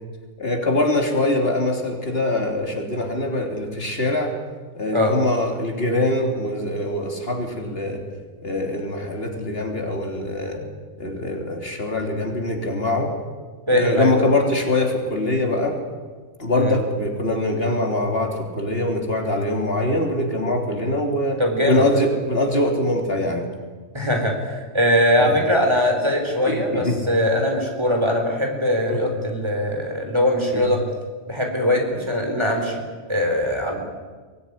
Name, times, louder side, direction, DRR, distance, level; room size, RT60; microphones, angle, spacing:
voice 1, 0.4-4.3 4.8-8.0 8.4-10.6 11.0-13.1 13.7-15.8 16.4-23.5 25.2-25.4 26.5-27.0 28.9-29.0 30.5-30.6, left 1 dB, 55° left, 2 dB, 3.5 m, -23 dB
voice 2, 13.7-14.2 16.5-16.8 21.4-21.8 23.9-30.8 31.3-32.8 33.1-33.8, left 1 dB, 25° right, 2 dB, 4.1 m, -21 dB
23.5 x 18.5 x 9.9 m, 1.4 s
omnidirectional pair, 1.2 m